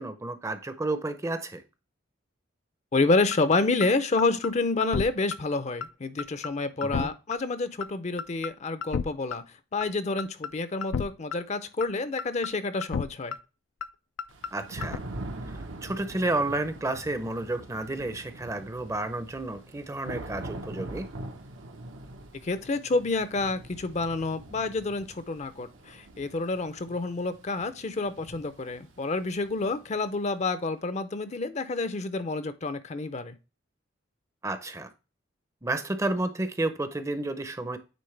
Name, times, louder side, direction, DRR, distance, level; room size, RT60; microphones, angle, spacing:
voice 1, 0.0-1.6 6.8-7.1 14.5-15.0 15.5-21.1 34.4-34.9 35.6-37.8, right 2 dB, 15° right, 11 dB, 0.6 m, -31 dB
voice 2, 2.9-9.4 9.7-13.4 22.4-33.3, left 3 dB, 35° left, 12 dB, 0.5 m, -28 dB
sound 1, 3.3-3.4 3.8-3.9 4.2-4.5 4.8-5.0 5.3-5.4 5.8-5.9 6.2-6.5 6.8-7.1 7.3-7.4 7.8-7.9 8.2-8.5 8.8-9.1 9.3-9.4 9.8-9.9 10.2-10.5 10.8-11.0 11.3-11.4 11.8-11.9 12.2-12.5 12.8-13.0 13.3-13.4 13.8-13.9 14.2-14.5 14.8-15.0, left 6 dB, 85° left, 0.4 m, -31 dB
Thunder / Rain, 14.3-30.1, right 1 dB, 85° right, 1.1 m, -43 dB
9.3 x 3.7 x 3.3 m, 0.30 s
head